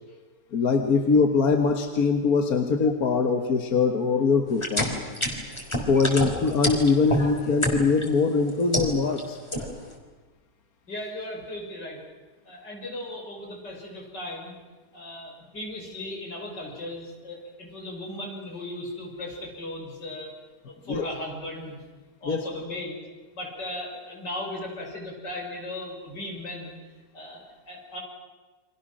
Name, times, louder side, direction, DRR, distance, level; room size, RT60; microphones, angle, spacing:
voice 1, 0.5-4.9 5.9-9.4 20.9-21.1 22.3-22.5, left 4 dB, 60° left, 6 dB, 1.9 m, -22 dB
sound 1, 4.5-8.1 8.5-9.2 9.5-9.9, equal, 15° left, 3.6 m, -28 dB
voice 2, 10.9-12.0 12.4-14.6 14.9-20.3 20.6-21.8 22.2-23.0 23.3-26.8 27.1-28.0, left 1 dB, 85° left, 0 dB, 6.7 m, -37 dB
29.5 x 25.0 x 6.3 m, 1.3 s
omnidirectional pair, 1.8 m